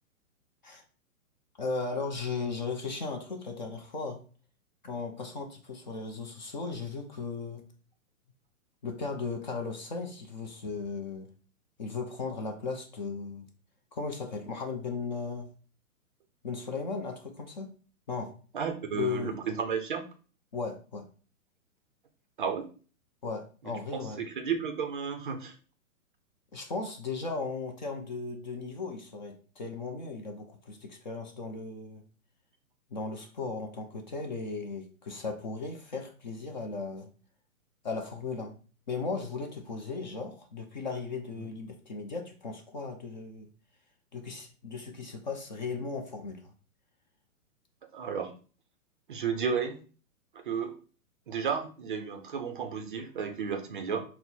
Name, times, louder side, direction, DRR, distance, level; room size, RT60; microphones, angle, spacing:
voice 1, 1.6-4.2 4.8-7.6 8.8-11.3 11.8-13.5 13.9-15.5 16.4-17.7 18.1-18.3 18.9-19.3 20.5-21.0 23.2-24.2 26.5-32.0 32.9-37.1 37.8-38.5 38.9-43.5 44.1-46.5, left 4 dB, 35° left, 4 dB, 0.4 m, -36 dB
voice 2, 18.5-20.0 22.4-22.7 23.9-25.5 41.4-41.5 47.9-48.3 49.1-49.8 50.4-50.8 51.3-54.0, right 6 dB, 40° right, 5 dB, 0.4 m, -33 dB
4.3 x 2.0 x 4.0 m, 0.39 s
hypercardioid pair, 140°, 44 cm